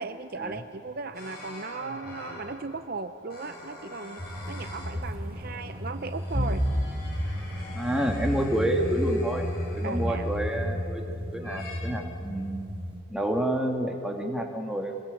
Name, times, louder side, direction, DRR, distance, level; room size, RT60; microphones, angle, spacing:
voice 1, 0.0-6.7 9.8-10.3, right 3 dB, 45° right, 9 dB, 0.7 m, -37 dB
sound 1, 1.1-2.7 3.3-5.0 5.4-10.9 11.4-11.8, left 2 dB, 50° left, 7.3 m, -46 dB
sound 2, 4.2-13.0, equal, 30° right, 4.8 m, -32 dB
voice 2, 7.7-12.7 13.1-15.0, right 1 dB, 5° right, 1 dB, 2.3 m, -29 dB
26.5 x 21.0 x 8.4 m, 2.6 s
head